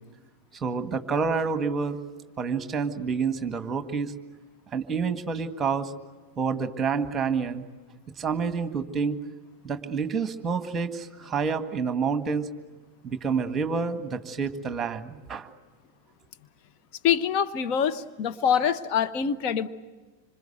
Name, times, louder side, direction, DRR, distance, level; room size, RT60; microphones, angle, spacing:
voice 1, 0.6-2.0 2.4-4.1 4.7-5.9 6.4-7.6 8.2-9.2 9.6-12.5 13.0-15.5, right 5 dB, 20° right, 9 dB, 1.8 m, -28 dB
voice 2, 17.0-19.7, left 8 dB, 40° left, 9 dB, 1.0 m, -25 dB
26.0 x 26.0 x 8.0 m, 1.3 s
figure-of-eight pair, 90°, 0 cm